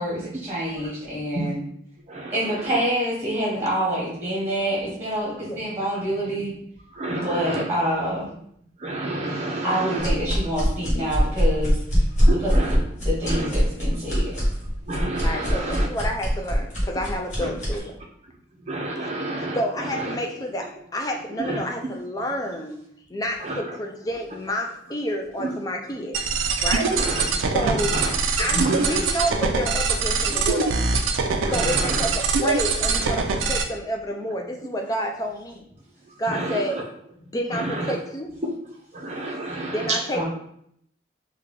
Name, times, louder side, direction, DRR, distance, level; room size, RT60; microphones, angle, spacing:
voice 1, 0.0-1.6 2.3-6.5 7.2-8.3 9.6-11.8 12.4-12.5 13.0-14.2 40.1-40.2, right 1 dB, 15° right, -6 dB, 1.1 m, -26 dB
voice 2, 2.1-2.8 5.4-5.7 5.9-6.6 6.9-7.6 8.8-10.3 11.1-11.2 12.1-12.8 13.2-13.5 14.1-15.9 17.4-17.5 18.2-20.2 20.6-20.7 21.4-21.6 22.1-22.3 23.1-23.8 25.4-25.5 25.9-26.0 26.4-29.0 30.3-30.4 31.4-32.1 32.8-32.9 33.7-33.8 36.0-36.8 37.2-38.0 38.9-40.2, right 2 dB, 35° right, 0 dB, 0.6 m, -31 dB
sound 1, 10.0-17.8, equal, 35° left, 1.3 m, -22 dB
voice 3, 15.2-18.0 19.6-22.8 23.1-26.2 26.6-26.9 27.5-27.9 28.4-30.8 31.5-32.1 32.4-35.7 36.2-36.8 37.3-38.3 39.7-40.2, equal, 20° left, 2 dB, 0.4 m, -29 dB
sound 2, 26.1-33.6, right 4 dB, 90° right, 0.4 m, -23 dB
3.7 x 2.3 x 3.3 m, 0.71 s
head